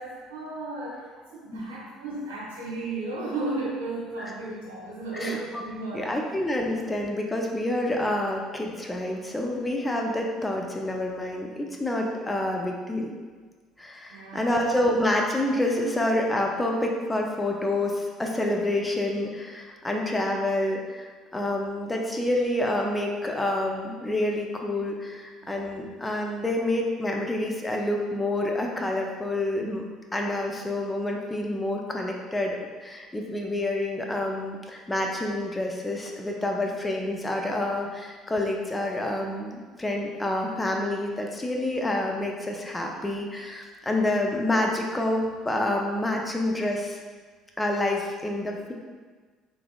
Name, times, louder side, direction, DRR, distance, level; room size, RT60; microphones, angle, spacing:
voice 1, 0.0-6.1 14.1-14.8 15.8-15.9 25.4-25.5, right 2 dB, 75° right, -6 dB, 0.9 m, -34 dB
voice 2, 5.1-5.6 5.9-13.1 13.8-29.8 30.1-47.0 47.6-48.7, left 1 dB, 15° left, 1 dB, 0.5 m, -28 dB
3.5 x 3.3 x 2.3 m, 1.4 s
figure-of-eight pair, 55°, 0 cm